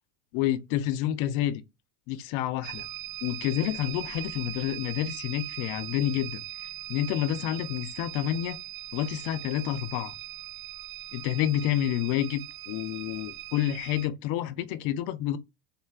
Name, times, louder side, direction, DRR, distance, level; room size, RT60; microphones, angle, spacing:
voice 1, 0.3-1.6 2.1-2.9 3.2-6.4 6.9-8.6 8.9-10.1 11.1-12.4 12.7-15.4, left 12 dB, 60° left, 0.5 m, -29 dB
sound 1, 2.6-14.1, right 15 dB, 65° right, 0.7 m, -40 dB
3.7 x 2.2 x 2.2 m
supercardioid pair, 125°, 50 cm